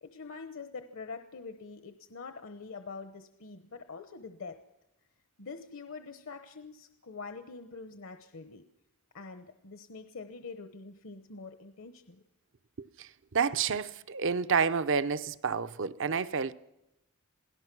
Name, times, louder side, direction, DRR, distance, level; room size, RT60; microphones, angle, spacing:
voice 1, 0.0-4.6 5.4-8.6 9.1-12.2, left 4 dB, 65° left, 1.0 m, -45 dB
voice 2, 12.8-16.5, right 6 dB, 60° right, 0.7 m, -30 dB
27.5 x 17.5 x 6.1 m
head